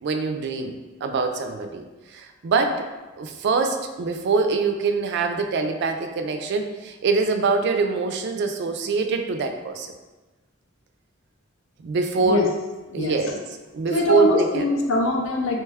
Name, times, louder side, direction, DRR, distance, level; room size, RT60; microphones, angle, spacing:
voice 1, 0.0-1.8 2.1-2.8 3.2-9.9 11.8-12.4 12.9-13.4 13.7-14.6, right 4 dB, 55° right, 6 dB, 0.3 m, -24 dB
voice 2, 12.9-13.3 13.9-15.6, left 2 dB, 70° left, 1 dB, 0.5 m, -22 dB
3.1 x 2.2 x 3.3 m, 1.2 s
head